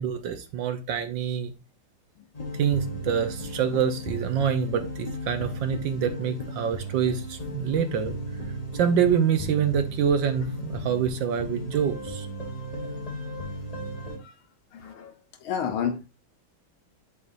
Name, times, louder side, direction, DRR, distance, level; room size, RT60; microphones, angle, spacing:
voice 1, 0.0-1.5 2.5-8.2 8.7-12.3, right 8 dB, 70° right, 1.3 m, -26 dB
sound 1, 2.3-14.2, equal, 25° left, 0.9 m, -35 dB
voice 2, 14.0-14.3 14.7-15.1 15.4-16.1, left 7 dB, 75° left, 1.7 m, -31 dB
8.4 x 4.7 x 2.4 m
omnidirectional pair, 2.4 m